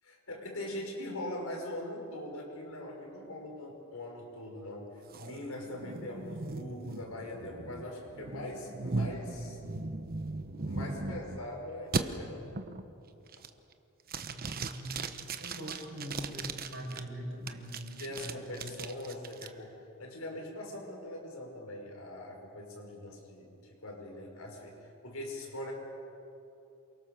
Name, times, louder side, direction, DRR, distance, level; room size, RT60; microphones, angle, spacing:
voice 1, 0.0-9.6 10.7-12.6 18.0-25.7, left 1 dB, 85° left, 0 dB, 6.0 m, -42 dB
sound 1, 5.1-11.4 11.9-12.0 12.5-12.9 13.3-13.7 14.1-17.0 17.5-19.5, right 3 dB, 45° right, 1.1 m, -38 dB
voice 2, 14.3-15.1 15.4-18.8, equal, 65° right, 0 dB, 6.0 m, -42 dB
28.5 x 23.5 x 6.9 m, 2.8 s
head